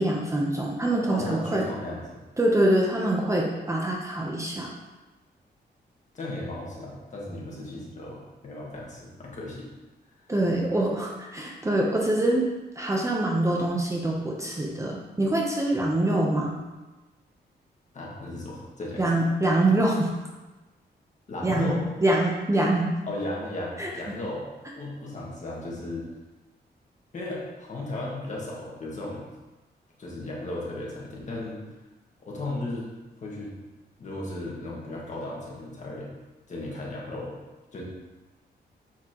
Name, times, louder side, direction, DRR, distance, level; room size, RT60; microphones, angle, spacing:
voice 1, 0.0-1.7 2.4-4.7 10.3-12.5 12.8-16.6 19.0-20.1 21.4-21.8 22.0-22.9 23.8-23.9, right 1 dB, 15° right, -2 dB, 0.8 m, -24 dB
voice 2, 1.1-2.2 6.1-9.7 17.9-19.0 21.3-21.9 23.0-24.4 24.8-26.1 27.1-29.3 30.0-31.6 32.2-32.9 33.2-33.5 34.0-36.1 36.5-37.4 37.7-37.8, left 2 dB, 45° left, -4 dB, 1.8 m, -35 dB
7.3 x 5.8 x 3.0 m, 1.1 s
wide cardioid pair, 140°, 18 cm